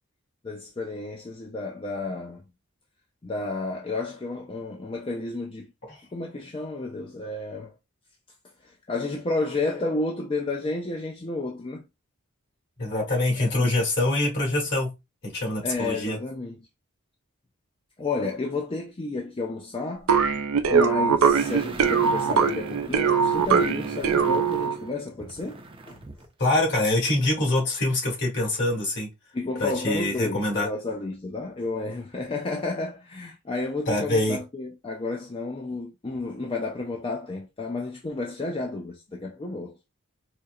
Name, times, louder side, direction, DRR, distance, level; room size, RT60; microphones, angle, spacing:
voice 1, 0.4-2.4 3.2-5.7 6.1-7.7 8.6-11.9 13.4-13.7 15.6-16.6 18.0-20.2 20.7-26.0 29.3-39.8, left 3 dB, 25° left, 0.5 m, -31 dB
voice 2, 12.8-14.9 15.2-16.2 26.4-29.1 29.6-30.7 33.9-34.4, left 2 dB, 55° left, 2.0 m, -24 dB
sound 1, 20.1-24.9, right 6 dB, 80° right, 0.5 m, -22 dB
sound 2, 21.4-26.3 26.6-26.7, right 2 dB, 25° right, 0.5 m, -41 dB
4.3 x 2.7 x 2.4 m
head